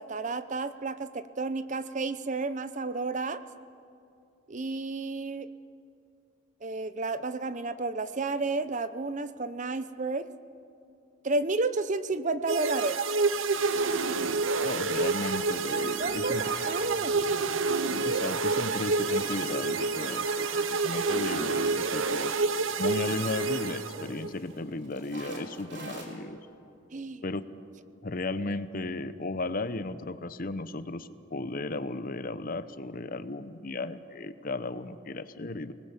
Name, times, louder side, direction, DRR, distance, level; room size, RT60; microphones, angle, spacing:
voice 1, 0.0-3.4 4.5-5.5 6.6-10.3 11.2-13.0 16.0-17.2 26.9-27.2, right 3 dB, 40° right, 13 dB, 0.7 m, -31 dB
sound 1, 12.5-24.3, right 4 dB, 80° right, 0.8 m, -28 dB
sound 2, 13.2-26.4, right 1 dB, 60° right, 4.5 m, -43 dB
voice 2, 14.6-16.4 18.0-22.3 22.8-26.4 27.2-27.4 28.0-35.7, left 2 dB, 45° left, 13 dB, 0.8 m, -35 dB
25.0 x 19.5 x 8.1 m, 2.6 s
head